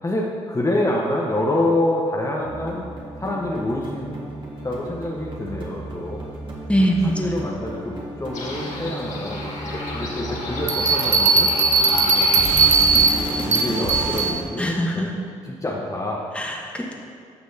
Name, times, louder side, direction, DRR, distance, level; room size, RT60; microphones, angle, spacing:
voice 1, 0.0-2.8 3.2-4.2 4.6-6.2 7.1-9.5 9.9-11.5 11.9-12.4 13.1-15.1 15.4-16.2, left 1 dB, 25° left, -3 dB, 1.1 m, -26 dB
sound 1, 2.4-14.3, right 1 dB, 35° right, 1.9 m, -33 dB
voice 2, 6.7-7.3 14.6-15.1 16.3-16.9, equal, 10° left, -1 dB, 1.3 m, -22 dB
sound 2, 8.3-13.3, left 2 dB, 55° left, 1.9 m, -32 dB
Bell, 10.7-14.3, right 4 dB, 60° right, 1.1 m, -18 dB
9.9 x 6.0 x 2.8 m, 2.3 s
hypercardioid pair, 50°, 14 cm